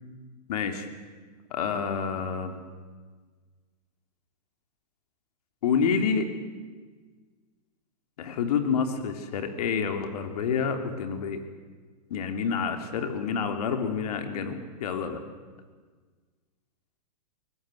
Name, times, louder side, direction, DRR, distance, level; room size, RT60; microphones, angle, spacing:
voice 1, 0.5-0.9 1.5-2.6 5.6-6.3 8.2-11.4 12.1-15.2, left 6 dB, 65° left, 6 dB, 3.2 m, -28 dB
22.5 x 19.5 x 7.9 m, 1.5 s
hypercardioid pair, 135°, 21 cm